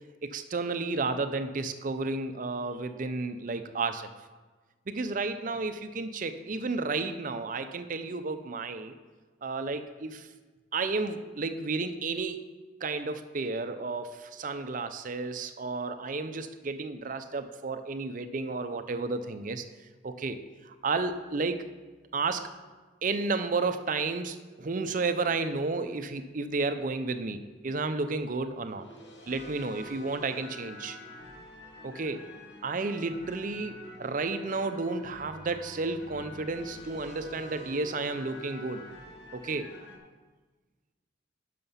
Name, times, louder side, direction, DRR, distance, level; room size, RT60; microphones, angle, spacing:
voice 1, 0.2-4.1 4.9-8.9 9.4-10.3 10.7-12.4 12.8-19.6 20.0-20.4 20.6-21.7 22.1-22.5 23.0-28.8 29.3-31.0 31.8-32.3 32.6-38.9 39.3-39.7, right 3 dB, 45° right, 10 dB, 0.5 m, -32 dB
sound 1, 27.3-27.6 28.4-40.0, left 1 dB, 65° left, 1.7 m, -48 dB
11.0 x 5.8 x 5.6 m, 1.3 s
head